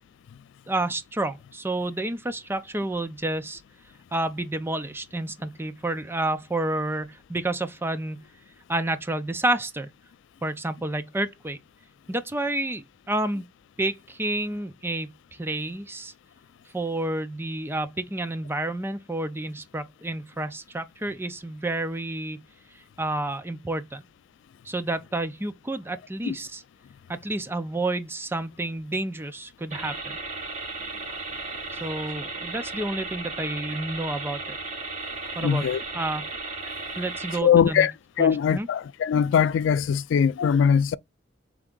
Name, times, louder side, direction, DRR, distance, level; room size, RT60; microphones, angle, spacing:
voice 1, 0.7-3.6 4.1-8.2 8.7-9.9 10.4-11.6 12.1-13.5 13.8-15.1 15.4-16.1 16.7-22.4 23.0-24.0 24.6-26.6 27.1-30.0 31.7-34.6 35.4-35.6 35.9-36.2 37.0-37.9 38.2-38.7, right 2 dB, 10° right, 0.5 m, -30 dB
sound 1, 29.7-37.4, right 3 dB, 40° right, 1.3 m, -35 dB
voice 2, 35.4-35.8 37.4-37.9 38.2-41.0, left 7 dB, 80° left, 0.3 m, -21 dB
3.6 x 3.3 x 3.7 m
head